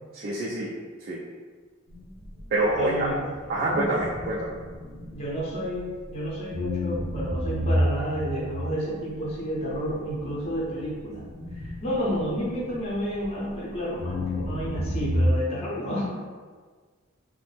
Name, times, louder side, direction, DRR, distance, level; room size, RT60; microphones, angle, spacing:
voice 1, 0.1-0.7 1.0-1.2 2.5-3.1 3.5-4.5, right 2 dB, 45° right, -6 dB, 0.4 m, -26 dB
sound 1, 1.9-6.1 6.5-13.6 14.0-15.3, left 1 dB, 90° left, 0.8 m, -31 dB
voice 2, 2.7-3.8 5.1-11.2 11.5-16.1, equal, 30° left, -6 dB, 0.7 m, -31 dB
3.2 x 2.1 x 3.2 m, 1.5 s
head